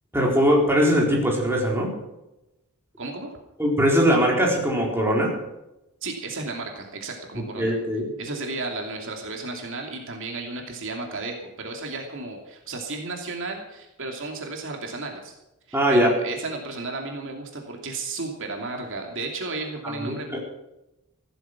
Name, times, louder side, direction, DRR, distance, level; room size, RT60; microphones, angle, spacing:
voice 1, 0.1-1.9 3.6-5.3 7.6-8.1 15.7-16.1 19.8-20.4, equal, 10° right, -2 dB, 4.3 m, -21 dB
voice 2, 3.0-3.4 6.0-7.8 8.2-15.3 15.7-20.4, right 3 dB, 60° right, 2 dB, 2.8 m, -33 dB
15.5 x 13.5 x 6.0 m, 0.93 s
head